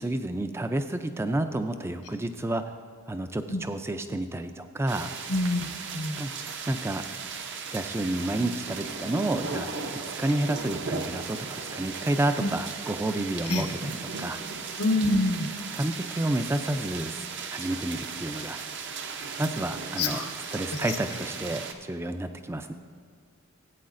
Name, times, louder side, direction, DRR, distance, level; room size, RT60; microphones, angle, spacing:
voice 1, 0.0-2.7 3.1-5.1 6.2-6.3 6.7-7.0 7.7-9.7 10.2-14.4 15.7-17.2 17.5-18.6 19.4-20.2 20.5-22.7, right 1 dB, 10° right, 8 dB, 0.3 m, -30 dB
sound 1, 4.9-21.7, right 5 dB, 50° right, 0.6 m, -37 dB
voice 2, 5.3-6.2 12.4-12.5 13.5-13.6 14.8-15.5 20.0-20.3 20.7-20.9, left 2 dB, 90° left, 3 dB, 1.2 m, -26 dB
15.5 x 8.5 x 2.5 m, 2.1 s
head